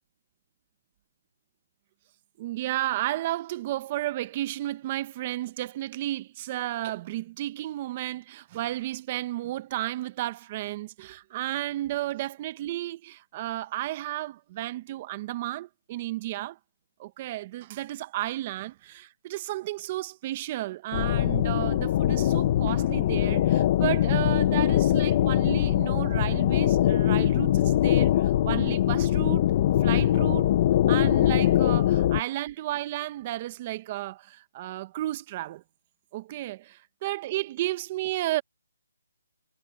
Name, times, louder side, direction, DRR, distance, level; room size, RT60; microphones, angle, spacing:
voice 1, 2.4-16.6 17.0-29.5 29.8-30.5 30.9-35.6 36.1-38.4, right 15 dB, 25° right, 1.0 m, -33 dB
sound 1, 20.9-32.2, left 12 dB, 30° left, 0.9 m, -22 dB
hypercardioid pair, 165°, 0 cm